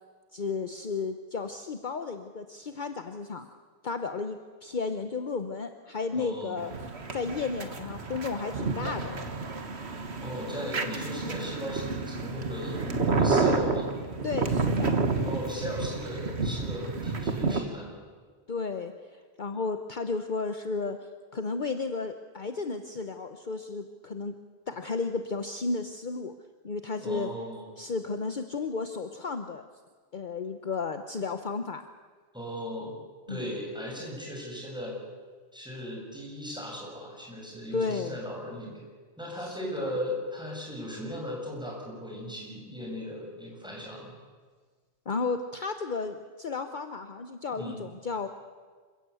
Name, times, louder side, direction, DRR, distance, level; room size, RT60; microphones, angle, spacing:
voice 1, 0.3-3.5 3.8-6.7 7.1-9.2 14.2-14.9 18.5-24.4 24.7-26.3 26.6-27.3 27.8-29.6 30.1-31.8 33.3-33.5 37.7-38.2 39.4-39.9 45.1-48.3, left 4 dB, 50° left, 8 dB, 1.1 m, -33 dB
voice 2, 6.1-6.6 10.2-13.9 15.2-18.0 26.9-27.7 32.3-33.0 33.3-35.0 35.5-38.8 39.2-44.1 47.5-47.8, equal, 5° right, -2 dB, 7.0 m, -37 dB
sound 1, 6.6-17.6, right 3 dB, 85° right, 1.9 m, -30 dB
27.0 x 16.0 x 8.4 m, 1.5 s
omnidirectional pair, 1.1 m